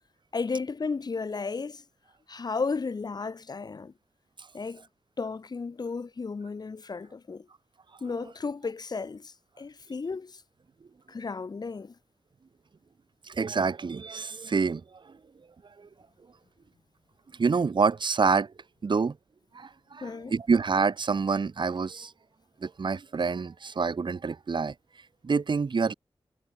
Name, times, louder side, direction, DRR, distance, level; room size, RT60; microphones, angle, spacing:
voice 1, 0.3-1.8 2.3-3.9 4.5-4.8 5.2-7.5 8.0-10.4 11.1-11.9 20.0-20.3, left 4 dB, 45° left, 0.6 m, -34 dB
voice 2, 13.3-14.8 15.8-15.9 17.4-18.5 18.8-19.2 19.5-22.1 22.6-24.7 25.2-25.9, right 5 dB, 55° right, 0.9 m, -27 dB
cardioid pair, 60°, 9 cm